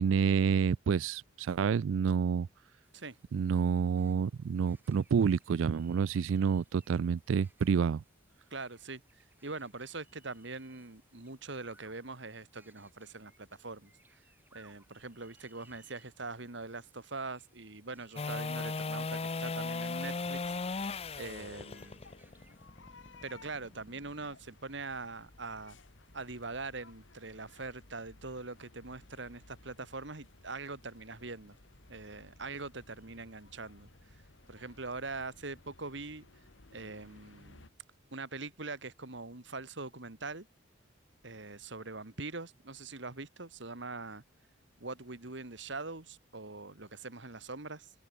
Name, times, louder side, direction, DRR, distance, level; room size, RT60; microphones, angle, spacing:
voice 1, 0.0-2.5 3.3-8.0, right 6 dB, 80° right, 0.4 m, -28 dB
sound 1, 2.8-22.7, right 2 dB, 10° right, 3.3 m, -67 dB
voice 2, 8.5-9.0 9.4-13.9 14.5-20.9 21.2-22.0 23.2-25.8 26.1-31.6 31.9-33.9 34.5-36.3 36.7-37.7 38.1-40.5 41.2-44.2 44.8-47.9, right 3 dB, 65° right, 2.1 m, -43 dB
sound 2, 18.2-24.3 30.8-30.9, left 3 dB, 30° left, 0.6 m, -37 dB
sound 3, 20.3-37.7, left 2 dB, 70° left, 1.8 m, -58 dB
open air
head